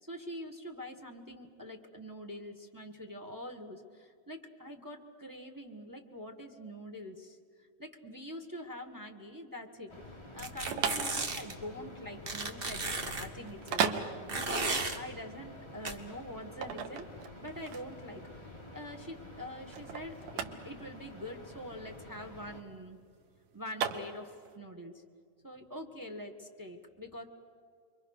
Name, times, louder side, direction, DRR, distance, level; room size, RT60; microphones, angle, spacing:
voice 1, 0.0-7.4 7.8-9.9 10.3-14.7 14.9-17.1 17.4-23.0 23.5-25.0 25.4-27.2, equal, 15° right, 6 dB, 0.7 m, -45 dB
sound 1, 9.9-22.6, left 1 dB, 10° left, 2.2 m, -50 dB
sound 2, 10.3-24.6, right 7 dB, 85° right, 2.9 m, -37 dB
sound 3, 10.4-11.5 12.3-13.3 14.3-15.0 15.8-15.9, right 3 dB, 30° right, 1.1 m, -34 dB
29.5 x 23.5 x 6.6 m, 2.2 s
omnidirectional pair, 3.6 m